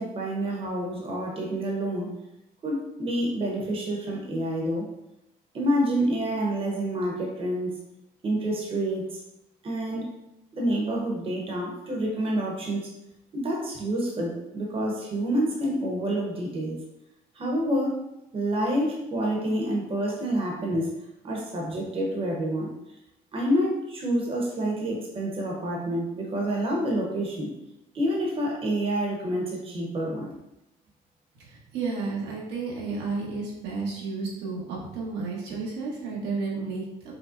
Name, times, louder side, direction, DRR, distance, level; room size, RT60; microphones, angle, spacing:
voice 1, 0.0-2.1 2.6-4.9 5.5-7.7 8.2-9.2 9.6-10.1 10.5-12.9 13.3-16.8 17.3-18.0 18.3-20.9 21.2-22.7 23.3-27.5 27.9-30.3, right 1 dB, 35° right, -1 dB, 0.8 m, -28 dB
voice 2, 31.4-37.1, right 4 dB, 85° right, -4 dB, 1.1 m, -32 dB
5.1 x 2.1 x 2.5 m, 0.88 s
cardioid pair, 110°, 17 cm